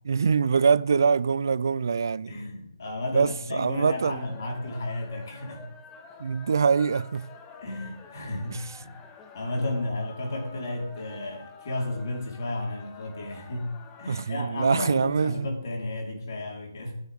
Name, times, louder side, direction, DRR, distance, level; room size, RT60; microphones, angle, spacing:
voice 1, 0.1-2.3 3.1-4.3 6.2-7.3 14.1-15.5, right 5 dB, 60° right, 0.6 m, -24 dB
voice 2, 2.3-5.7 7.6-9.0 9.3-16.9, left 1 dB, 55° left, 4.5 m, -33 dB
sound 1, 3.7-14.2, left 4 dB, 15° left, 1.0 m, -48 dB
25.0 x 9.5 x 3.7 m
hypercardioid pair, 165°, 2 cm